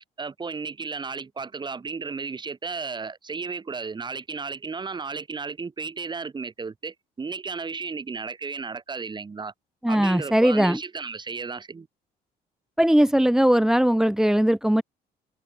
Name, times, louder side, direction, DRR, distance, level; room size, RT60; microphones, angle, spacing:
voice 1, 0.2-9.5 9.9-11.9, right 4 dB, 25° right, 5.3 m, -34 dB
voice 2, 9.8-10.8 12.8-14.8, equal, 5° right, 1.4 m, -19 dB
cardioid pair, 110°, 17 cm